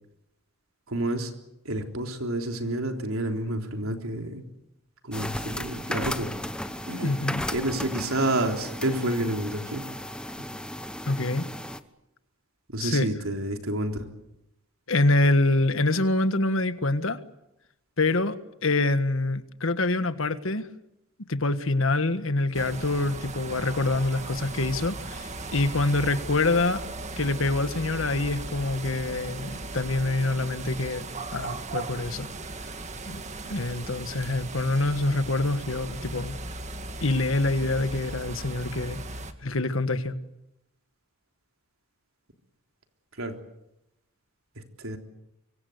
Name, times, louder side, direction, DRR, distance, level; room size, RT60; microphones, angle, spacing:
voice 1, 0.9-1.3 1.7-4.4 5.0-6.3 6.9-7.2 7.5-9.8 12.7-14.1 43.2-43.3 44.6-45.0, right 1 dB, 80° right, 4 dB, 3.7 m, -29 dB
sound 1, 5.1-11.8, left 1 dB, 5° left, 1.1 m, -35 dB
voice 2, 7.0-7.4 11.1-11.4 12.8-13.1 14.9-17.2 18.0-18.4 18.6-20.7 21.3-26.8 27.2-31.0 31.3-32.3 32.6-32.7 33.0-33.2 33.5-36.4 37.0-39.0 39.4-40.2, left 2 dB, 70° left, 11 dB, 1.6 m, -25 dB
sound 2, 22.5-39.3, right 2 dB, 35° right, 1.9 m, -37 dB
25.0 x 24.0 x 8.1 m, 0.87 s
head